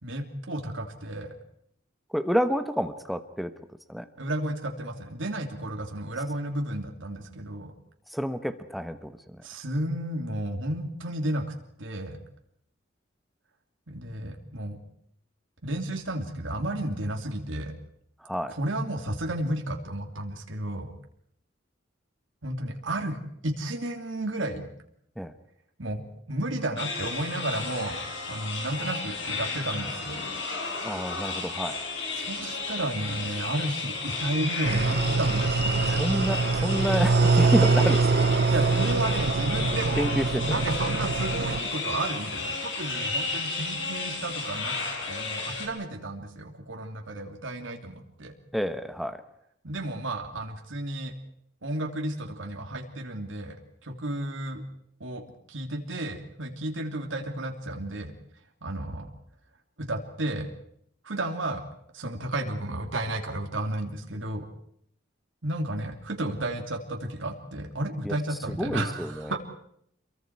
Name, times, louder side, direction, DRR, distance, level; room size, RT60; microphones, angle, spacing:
voice 1, 0.0-1.3 4.2-7.7 9.4-11.5 11.8-12.2 13.9-14.8 15.6-17.7 18.5-20.9 22.4-24.7 25.8-26.0 26.3-28.0 28.3-30.2 32.2-36.0 38.5-44.7 45.1-48.3 49.6-51.1 51.6-53.6 53.8-54.6 55.0-58.1 58.6-59.1 59.8-60.5 61.0-61.6 61.9-64.5 65.4-69.4, right 1 dB, 85° right, 3 dB, 2.9 m, -32 dB
voice 2, 2.1-3.5 3.9-4.1 8.1-9.1 18.2-18.5 25.2-25.3 30.8-31.8 36.0-38.0 40.0-40.6 48.5-49.2 68.0-68.2 68.6-69.4, equal, ahead, 9 dB, 1.0 m, -28 dB
sound 1, 26.8-45.7, left 3 dB, 70° left, 5.3 m, -33 dB
sound 2, 34.6-41.6, right 4 dB, 55° right, 0.8 m, -24 dB
28.0 x 23.0 x 4.7 m, 0.71 s
head